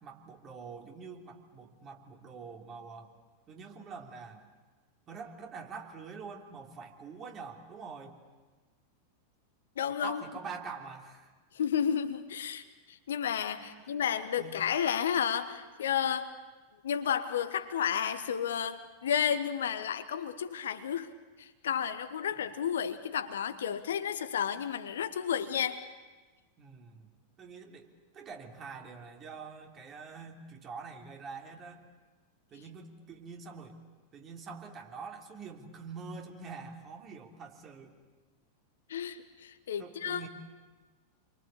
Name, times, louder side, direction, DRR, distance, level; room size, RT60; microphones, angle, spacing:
voice 1, 0.0-3.1 3.5-4.5 5.1-8.2 10.0-11.3 13.6-14.0 14.4-14.6 26.6-27.1 27.4-27.9 28.1-31.8 32.5-33.8 34.1-37.9 39.8-40.3, right 5 dB, 30° right, 2 dB, 3.2 m, -45 dB
voice 2, 9.8-10.2 11.5-16.3 16.8-21.1 21.4-25.8 38.9-40.3, left 8 dB, 65° left, 10 dB, 1.3 m, -32 dB
28.0 x 24.0 x 8.5 m, 1.3 s
figure-of-eight pair, 90°, 0 cm